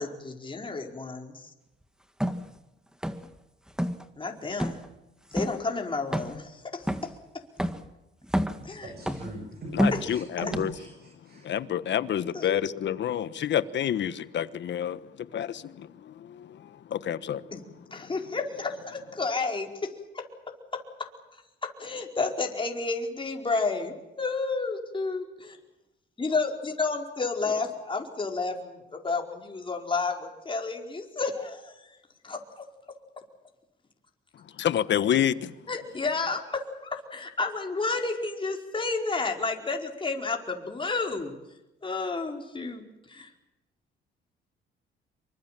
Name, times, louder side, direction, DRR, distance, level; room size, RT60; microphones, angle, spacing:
voice 1, 0.0-1.4 4.2-4.8 5.3-6.9 8.6-8.9 10.4-10.5 12.3-12.6 17.5-17.6 17.9-20.2 21.6-25.6 26.2-31.7 32.2-32.6 35.7-36.6 36.9-41.3 41.8-43.3, left 3 dB, 25° left, 4.7 m, -31 dB
sound 1, 2.2-2.4 3.0-3.4 3.7-4.0 4.6-4.9 5.4-5.6 6.1-6.5 6.9-7.2 7.6-7.9 8.2-8.7 9.1-9.4 9.8-10.1 10.5-10.6, equal, 5° right, 2.0 m, -28 dB
voice 2, 8.7-11.4, right 1 dB, 50° right, 7.3 m, -39 dB
voice 3, 9.7-10.7 11.4-15.0 15.3-17.4 34.6-35.5, left 10 dB, 65° left, 1.3 m, -28 dB
26.5 x 24.0 x 7.6 m
cardioid pair, 90°, 20 cm